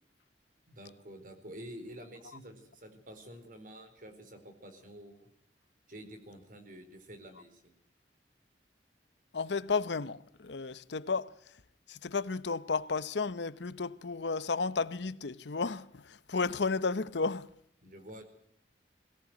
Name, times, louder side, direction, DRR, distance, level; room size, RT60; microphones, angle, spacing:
voice 1, 0.7-5.3 5.9-7.7 17.8-18.2, equal, 50° right, 4.3 m, -49 dB
voice 2, 9.3-11.3 11.9-17.5, left 4 dB, 80° left, 0.8 m, -33 dB
21.5 x 17.5 x 9.5 m
head